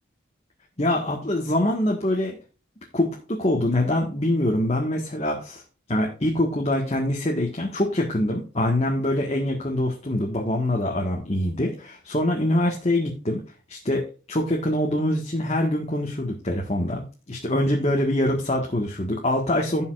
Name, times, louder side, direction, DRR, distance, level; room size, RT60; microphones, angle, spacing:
voice 1, 0.8-2.4 2.9-5.6 5.9-13.4 13.7-19.8, left 1 dB, 35° left, 0 dB, 1.7 m, -24 dB
16.5 x 5.5 x 2.5 m, 0.35 s
head